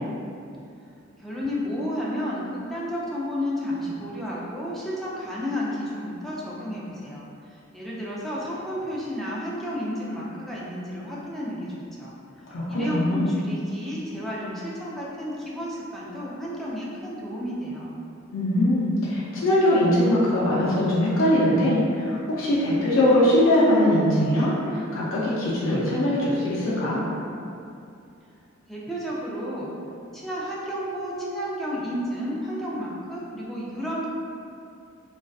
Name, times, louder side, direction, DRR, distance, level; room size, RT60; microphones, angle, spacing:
voice 1, 1.2-12.1 12.7-18.0 28.7-29.7 30.1-34.1, equal, ahead, -7 dB, 0.3 m, -32 dB
voice 2, 12.5-13.3 18.3-27.0, left 1 dB, 75° left, -8 dB, 0.4 m, -21 dB
2.4 x 2.3 x 2.3 m, 2.5 s
head